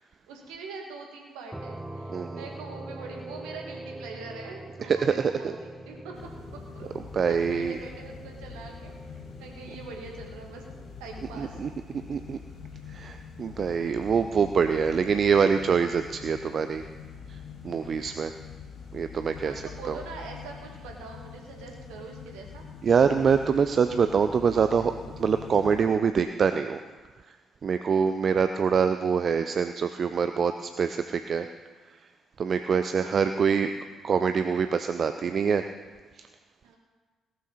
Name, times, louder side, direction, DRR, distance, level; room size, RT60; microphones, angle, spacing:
voice 1, 0.3-6.1 6.5-6.9 7.4-9.1 9.4-10.6 11.0-11.6 19.3-22.6 27.8-28.1 32.5-32.8 36.6-36.8, right 4 dB, 65° right, 1 dB, 2.3 m, -43 dB
sound 1, 1.5-11.0, right 1 dB, 10° right, 1.4 m, -43 dB
voice 2, 2.1-2.4 4.9-5.1 5.4-5.5 7.1-7.8 11.4-11.7 12.1-12.4 12.9-16.8 17.6-18.3 18.9-19.5 19.9-20.0 22.8-24.9 25.2-26.8 27.6-31.5 32.4-33.7 34.0-35.6 36.2-36.3, right 6 dB, 45° right, 9 dB, 0.6 m, -25 dB
sound 2, 6.1-25.9, left 6 dB, 55° left, 1.6 m, -44 dB
18.0 x 12.5 x 4.2 m, 1.4 s
figure-of-eight pair, 45°, 0 cm